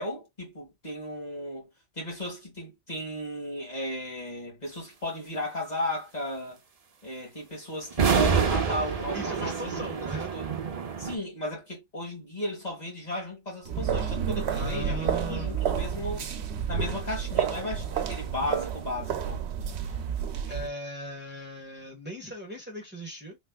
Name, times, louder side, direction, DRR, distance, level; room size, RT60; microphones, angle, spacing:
voice 1, 0.0-1.7 2.0-6.6 7.0-10.1 10.3-10.4 11.0-16.2 16.7-19.4, left 1 dB, 40° left, 2.0 m, -35 dB
sound 1, 7.9-11.2, right 6 dB, 40° right, 0.7 m, -27 dB
voice 2, 9.1-10.4 14.5-15.6 19.8-20.0 20.5-23.4, equal, 10° right, 1.5 m, -39 dB
sound 2, 13.7-20.7, right 8 dB, 70° right, 0.9 m, -30 dB
3.3 x 3.2 x 2.2 m
omnidirectional pair, 1.2 m